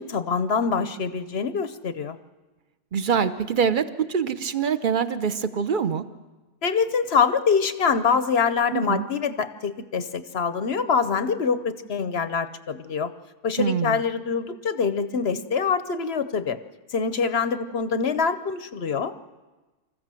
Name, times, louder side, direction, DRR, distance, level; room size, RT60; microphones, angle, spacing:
voice 1, 0.0-2.2 6.6-13.1 13.4-16.6 16.9-19.1, left 5 dB, 50° left, 11 dB, 0.8 m, -25 dB
voice 2, 2.9-6.0 8.7-9.0 13.6-14.0, right 7 dB, 45° right, 12 dB, 0.6 m, -24 dB
26.0 x 14.5 x 7.6 m, 1.2 s
omnidirectional pair, 1.7 m